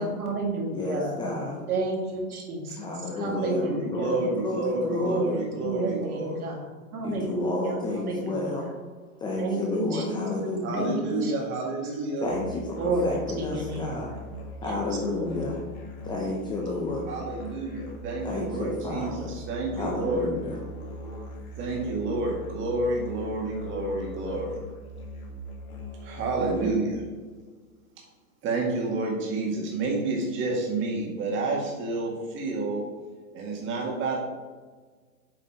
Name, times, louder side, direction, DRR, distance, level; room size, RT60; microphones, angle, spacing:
voice 1, 0.0-1.2 1.7-4.1 4.9-6.6 6.9-8.4 9.4-11.3 12.8-13.8 14.6-14.8 15.1-15.3, right 2 dB, 80° right, 0 dB, 2.1 m, -31 dB
voice 2, 0.7-1.6 2.8-5.4 7.0-8.7 9.2-10.9 12.2-14.1 14.6-15.6 16.0-17.1 18.2-19.3 19.8-20.5, left 2 dB, 10° left, -1 dB, 0.5 m, -31 dB
voice 3, 3.3-6.5 10.6-12.3 17.0-20.3 21.6-24.6 26.0-27.0 28.0-28.1 28.4-32.9 33.3-34.2, right 2 dB, 25° right, -1 dB, 1.9 m, -29 dB
Musical instrument, 12.2-27.0, equal, 75° left, 2.0 m, -41 dB
7.6 x 4.0 x 4.4 m, 1.4 s
hypercardioid pair, 135°, 43 cm